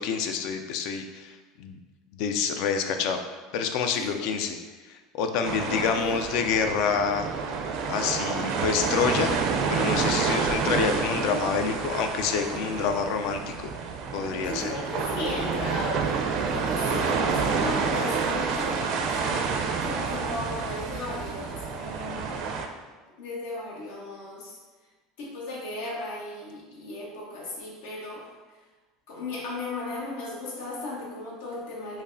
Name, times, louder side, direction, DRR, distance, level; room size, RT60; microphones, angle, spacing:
voice 1, 0.0-1.3 1.6-1.8 2.1-3.2 3.5-4.6 5.1-7.3 7.9-9.4 9.7-13.7 14.1-14.8, left 6 dB, 65° left, 6 dB, 0.3 m, -27 dB
sound 1, 5.4-22.7, right 5 dB, 60° right, 0.4 m, -28 dB
voice 2, 5.7-6.3 14.3-19.6 19.8-22.5 23.2-24.6 25.2-28.3 29.1-32.0, left 2 dB, 85° left, -3 dB, 0.9 m, -36 dB
5.1 x 2.0 x 2.6 m, 1.3 s
supercardioid pair, 105°, 0 cm